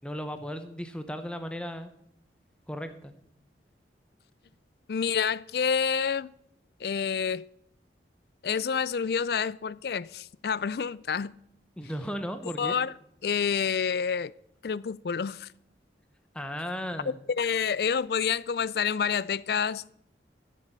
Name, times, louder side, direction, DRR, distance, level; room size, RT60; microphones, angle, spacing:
voice 1, 0.0-1.9 2.7-3.1 11.8-12.8 16.3-17.2, equal, 5° left, 0.9 m, -35 dB
voice 2, 4.9-6.3 6.8-7.5 8.4-11.3 12.6-12.9 13.2-14.3 14.6-15.5 17.4-19.9, left 6 dB, 60° left, 0.4 m, -28 dB
14.5 x 7.4 x 6.7 m
head